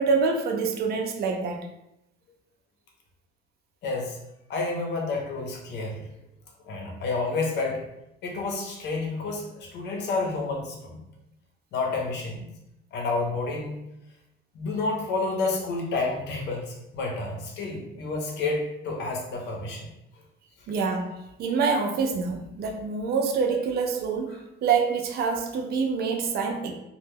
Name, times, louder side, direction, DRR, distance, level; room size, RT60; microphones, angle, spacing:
voice 1, 0.0-1.7 20.7-26.7, right 5 dB, 50° right, 3 dB, 0.4 m, -26 dB
voice 2, 3.8-4.2 4.5-6.0 6.7-7.8 8.2-11.0 11.7-12.4 12.9-13.8 14.5-19.9, left 3 dB, 55° left, 0 dB, 0.7 m, -29 dB
2.2 x 2.2 x 3.2 m, 0.87 s
cardioid pair, 150°, 21 cm